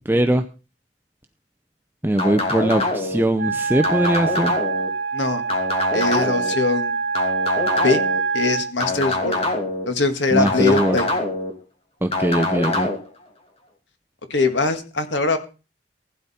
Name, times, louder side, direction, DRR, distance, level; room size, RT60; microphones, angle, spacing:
voice 1, 0.1-0.4 2.0-4.6 10.3-11.0 12.0-12.9, right 1 dB, 10° right, 7 dB, 0.6 m, -21 dB
sound 1, 2.2-3.2 3.8-4.9 5.5-6.5 7.1-8.2 8.8-9.9 10.5-11.5 12.1-13.0, left 2 dB, 35° left, 2.7 m, -24 dB
Wind instrument woodwind instrument, 3.3-8.7, right 5 dB, 75° right, 2.1 m, -25 dB
voice 2, 5.9-7.0 7.8-8.0 8.3-9.4 9.9-11.1 14.3-15.4, left 3 dB, 80° left, 8 dB, 1.9 m, -21 dB
15.5 x 9.9 x 4.3 m, 0.33 s
head